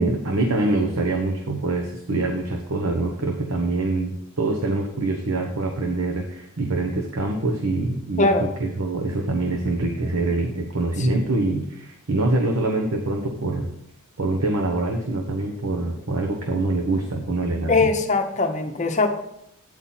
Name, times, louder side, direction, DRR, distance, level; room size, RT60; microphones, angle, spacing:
voice 1, 0.0-13.7 14.2-17.9, right 2 dB, 70° right, 1 dB, 0.9 m, -25 dB
voice 2, 17.7-19.1, left 3 dB, 30° left, 5 dB, 0.8 m, -21 dB
9.0 x 4.3 x 5.7 m, 0.77 s
head